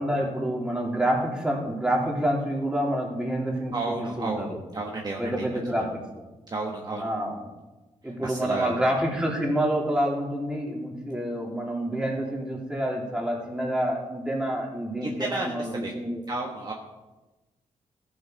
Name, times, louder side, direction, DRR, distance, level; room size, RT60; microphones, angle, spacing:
voice 1, 0.0-4.6 5.2-6.0 7.0-7.3 8.0-16.2, right 1 dB, 5° right, -3 dB, 3.2 m, -28 dB
voice 2, 3.7-4.4 4.7-5.5 5.8-5.9 6.5-7.0 8.2-8.8 15.0-15.9 16.3-16.7, right 2 dB, 35° right, 0 dB, 1.3 m, -32 dB
14.0 x 7.0 x 5.1 m, 1.1 s
cardioid pair, 85°, 13 cm